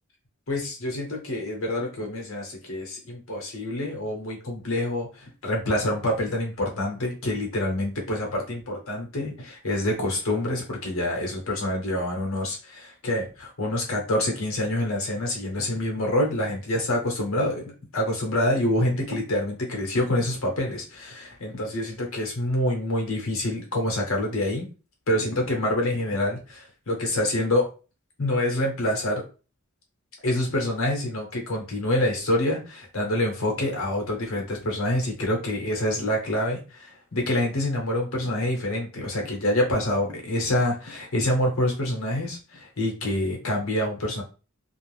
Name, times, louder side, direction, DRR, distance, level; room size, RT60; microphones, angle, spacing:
voice 1, 0.5-24.7 25.1-27.7 28.2-29.2 30.2-44.2, left 1 dB, 65° left, 0 dB, 1.0 m, -26 dB
2.6 x 2.3 x 3.2 m, 0.34 s
head